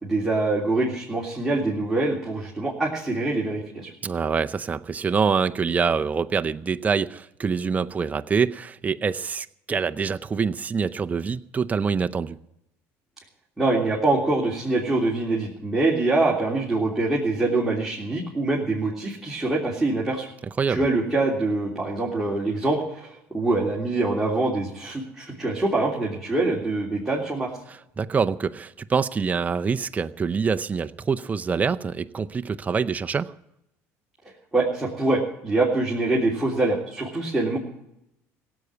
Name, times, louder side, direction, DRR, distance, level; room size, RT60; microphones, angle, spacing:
voice 1, 0.0-3.9 13.6-20.3 20.7-27.5 34.5-37.6, right 2 dB, 5° right, -5 dB, 3.4 m, -24 dB
voice 2, 4.0-12.4 20.6-20.8 28.0-33.3, right 5 dB, 25° right, 9 dB, 0.6 m, -25 dB
16.5 x 8.1 x 9.7 m, 0.81 s
supercardioid pair, 100°, 7 cm